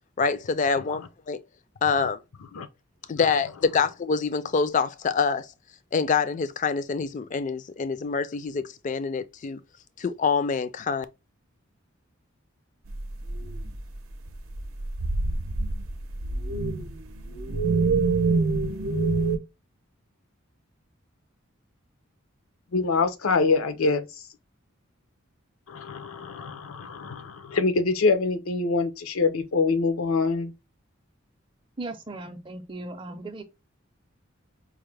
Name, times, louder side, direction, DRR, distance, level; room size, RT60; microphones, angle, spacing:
voice 1, 0.2-1.4 1.8-2.2 3.1-5.5 5.9-9.6 10.0-11.1, left 5 dB, 35° left, 0.3 m, -26 dB
sound 1, 12.9-14.0 14.3-19.4, right 3 dB, 80° right, 0.6 m, -26 dB
voice 2, 22.7-24.1 25.7-30.5, left 4 dB, 85° left, 0.6 m, -25 dB
voice 3, 31.8-33.4, right 2 dB, 25° right, 0.5 m, -37 dB
4.7 x 2.0 x 3.2 m
head